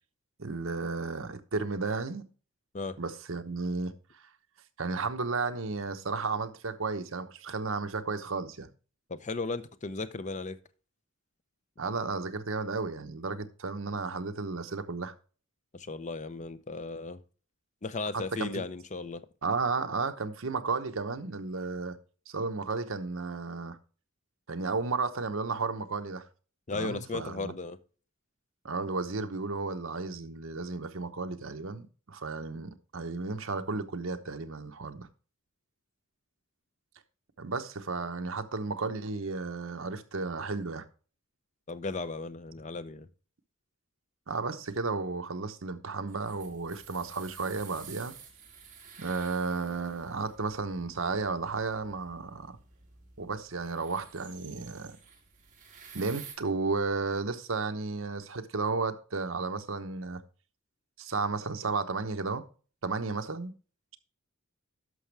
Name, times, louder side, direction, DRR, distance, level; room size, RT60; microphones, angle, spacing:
voice 1, 0.4-2.2 3.0-3.9 4.8-8.7 11.8-15.1 18.4-18.5 19.4-22.0 22.3-23.8 24.5-26.2 26.7-27.5 28.6-35.1 37.4-40.8 44.3-48.1 49.0-52.6 53.2-55.0 55.9-60.2 61.0-62.4 62.8-63.5, right 4 dB, 70° right, 1.0 m, -33 dB
voice 2, 9.1-10.6 15.7-17.2 17.8-19.2 26.7-27.8 41.7-43.1, left 3 dB, 35° left, 0.7 m, -36 dB
sound 1, 46.1-56.3, right 7 dB, 40° right, 2.7 m, -51 dB
11.0 x 6.2 x 3.3 m
head